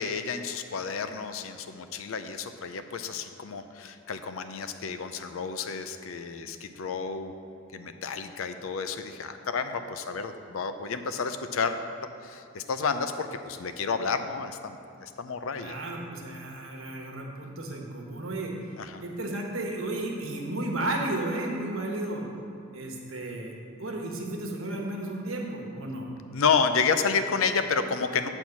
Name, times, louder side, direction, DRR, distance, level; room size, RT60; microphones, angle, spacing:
voice 1, 0.0-7.3 7.7-11.8 12.2-15.7 18.8-19.0 26.3-28.3, left 5 dB, 85° left, 9 dB, 0.5 m, -30 dB
voice 2, 15.5-18.5 19.0-22.3 22.7-26.1, right 1 dB, 90° right, 0 dB, 1.2 m, -33 dB
8.0 x 4.4 x 7.1 m, 2.7 s
head